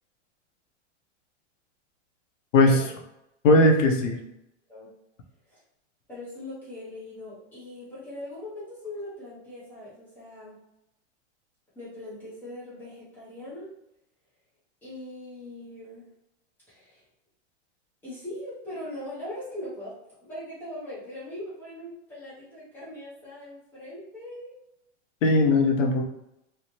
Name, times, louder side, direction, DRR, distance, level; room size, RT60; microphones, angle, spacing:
voice 1, 2.5-2.9 3.5-3.7 4.7-4.9 5.5-5.6 6.1-10.6 11.7-13.7 14.8-16.1 16.7-17.0 18.0-19.9 20.2-24.5, left 1 dB, 5° left, -11 dB, 0.3 m, -40 dB
voice 2, 3.4-4.2 25.2-26.0, left 2 dB, 85° left, 3 dB, 0.7 m, -19 dB
3.2 x 2.0 x 2.7 m, 0.85 s
hypercardioid pair, 145°, 37 cm